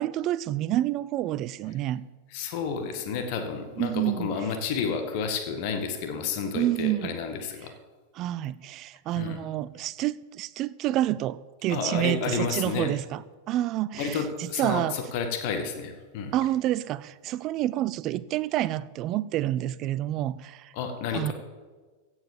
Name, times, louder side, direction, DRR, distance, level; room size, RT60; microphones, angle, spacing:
voice 1, 0.0-2.0 3.8-4.3 6.5-7.2 8.1-13.2 13.5-15.0 16.3-20.7 21.1-21.3, right 14 dB, 35° right, 0.5 m, -28 dB
voice 2, 2.3-7.7 9.2-9.4 11.7-12.9 14.0-16.3 20.7-21.3, left 6 dB, 45° left, 1.8 m, -31 dB
15.5 x 8.2 x 7.1 m
figure-of-eight pair, 90°, 0 cm